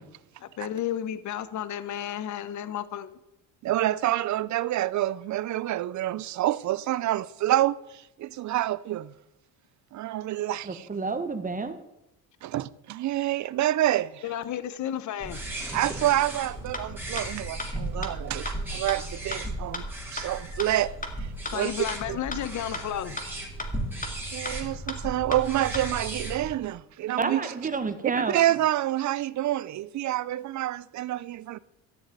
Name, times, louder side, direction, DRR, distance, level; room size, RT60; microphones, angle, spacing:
voice 1, 0.4-3.2 14.2-15.5 21.5-23.2, left 10 dB, 50° left, 1.0 m, -32 dB
voice 2, 3.6-9.1 9.9-10.9 12.4-14.2 15.7-19.8 20.1-20.9 21.5-21.7 22.1-22.2 24.3-27.5 28.2-31.6, right 14 dB, 50° right, 0.6 m, -27 dB
voice 3, 10.6-11.8 27.2-28.4, right 4 dB, 20° right, 1.3 m, -30 dB
sound 1, 15.2-26.5, right 1 dB, 5° right, 3.4 m, -36 dB
sound 2, 16.7-16.8 17.2-17.3 17.6-17.7 18.0-18.1 18.5-18.6 18.9-19.0 19.3-19.4 19.7-19.8 20.2-20.3 20.6-20.7 21.0-21.1 21.5-21.6 21.9-22.0 22.3-22.4 22.7-22.8 23.2-23.3 23.6-23.7 24.0-24.1 24.5-24.6 24.9-25.0 25.3-25.4 25.7-25.8, left 2 dB, 20° left, 2.1 m, -33 dB
13.5 x 6.5 x 9.0 m
cardioid pair, 125°, 39 cm